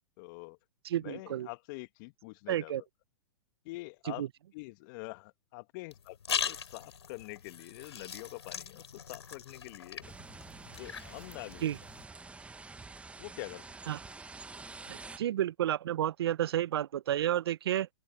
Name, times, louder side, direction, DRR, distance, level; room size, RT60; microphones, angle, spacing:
voice 1, 0.2-0.6 0.9-2.8 3.7-10.0 10.6-11.7 13.2-13.7, left 25 dB, 45° left, 1.8 m, -45 dB
voice 2, 0.8-1.5 2.5-2.8 4.1-4.3 11.6-11.8 13.9-14.0 14.9-17.9, right 11 dB, 65° right, 0.7 m, -31 dB
sound 1, 5.9-12.0, left 7 dB, 80° left, 4.9 m, -40 dB
sound 2, 10.0-15.2, right 3 dB, 10° right, 1.2 m, -48 dB
open air
hypercardioid pair, 110°, 14 cm